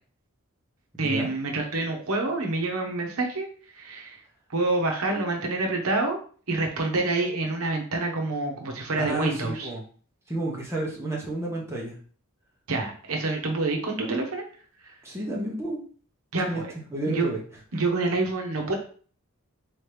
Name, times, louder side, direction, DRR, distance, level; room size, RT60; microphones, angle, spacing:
voice 1, 1.0-3.5 3.7-4.2 4.5-6.2 6.5-9.7 12.7-14.4 16.3-16.7 17.0-17.3 17.7-18.7, right 2 dB, 75° right, 2 dB, 0.9 m, -27 dB
voice 2, 9.0-9.8 10.3-12.0 15.0-15.8 16.4-16.6 16.9-17.4, right 2 dB, 10° right, -3 dB, 0.9 m, -31 dB
3.9 x 3.1 x 3.3 m, 0.43 s
head